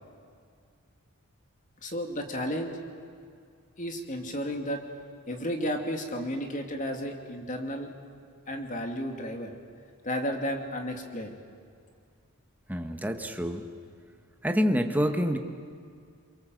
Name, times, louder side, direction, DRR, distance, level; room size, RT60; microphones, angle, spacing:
voice 1, 1.8-2.8 3.8-4.8 5.3-7.9 8.5-9.6 10.0-11.4, equal, 35° left, 4 dB, 2.7 m, -33 dB
voice 2, 12.7-13.6 14.4-15.4, equal, 10° right, 5 dB, 1.5 m, -27 dB
29.0 x 23.5 x 7.9 m, 2.2 s
head